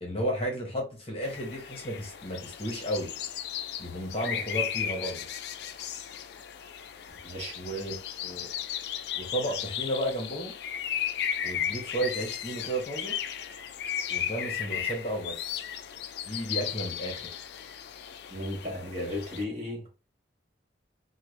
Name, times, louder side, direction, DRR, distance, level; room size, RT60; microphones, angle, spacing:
voice 1, 0.0-3.1 3.8-5.3 7.6-8.5 9.1-10.5 11.4-13.1 14.1-15.4 16.3-17.3, right 1 dB, 30° left, 0.9 m, -33 dB
sound 1, 1.2-19.4, left 9 dB, 60° left, 0.3 m, -35 dB
voice 2, 7.2-7.6 18.3-19.9, left 1 dB, 35° right, 1.2 m, -35 dB
3.3 x 2.2 x 3.1 m
head